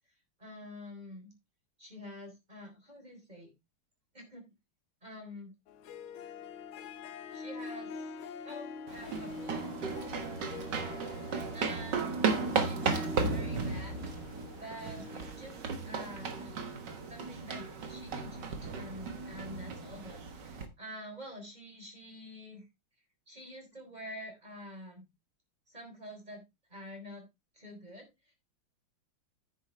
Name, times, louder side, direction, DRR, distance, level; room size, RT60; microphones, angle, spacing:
voice 1, 0.4-1.3 1.8-3.5 4.1-4.5 5.0-5.5 7.3-8.1 8.4-9.7 11.5-12.3 12.5-14.0 14.6-15.6 15.8-16.6 17.1-22.7 23.3-25.1 25.7-26.4 26.7-27.3 27.5-28.3, equal, 20° right, 2 dB, 4.0 m, -47 dB
Harp, 5.7-16.9, left 5 dB, 85° left, 1.8 m, -45 dB
sound 1, 8.9-20.7, right 5 dB, 55° right, 2.0 m, -35 dB
10.0 x 8.2 x 3.3 m, 0.22 s
omnidirectional pair, 2.3 m